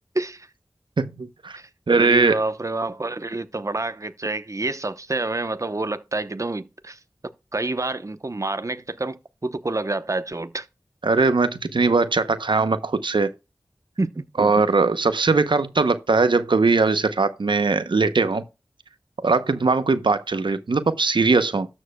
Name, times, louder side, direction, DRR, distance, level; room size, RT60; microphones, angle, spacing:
voice 1, 0.1-0.5 1.5-1.7 2.0-7.0 7.5-10.7 14.0-14.2, right 2 dB, 40° right, 0.8 m, -28 dB
voice 2, 1.0-1.6 1.9-2.4 11.0-13.3 14.4-18.4 19.2-21.7, right 4 dB, 85° right, 0.7 m, -20 dB
13.0 x 7.3 x 2.2 m
wide cardioid pair, 45°, 8 cm